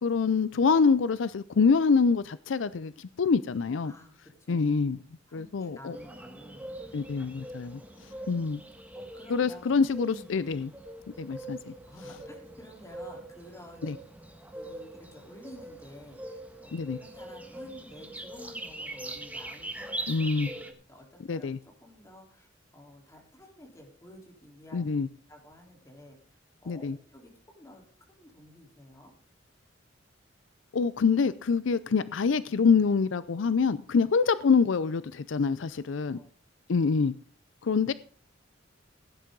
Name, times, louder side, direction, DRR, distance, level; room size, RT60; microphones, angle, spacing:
voice 1, 0.0-3.9 4.5-5.0 5.3-6.0 6.9-8.6 9.3-10.7 11.2-11.7 13.8-14.0 16.7-17.0 20.1-20.5 21.3-21.6 24.7-25.1 26.7-27.0 30.7-36.2 36.7-37.1 37.6-37.9, left 5 dB, 75° left, 16 dB, 0.5 m, -26 dB
voice 2, 3.8-6.9 7.6-8.3 8.9-9.8 10.0-10.5 11.9-13.9 14.5-16.7 17.0-22.5 22.7-24.9 25.3-26.2 26.6-29.1 35.7-35.8 36.1-36.3, left 1 dB, 15° left, 0 dB, 3.8 m, -51 dB
sound 1, 5.9-20.7, right 1 dB, 10° right, 1.5 m, -42 dB
16.5 x 10.0 x 3.9 m, 0.43 s
head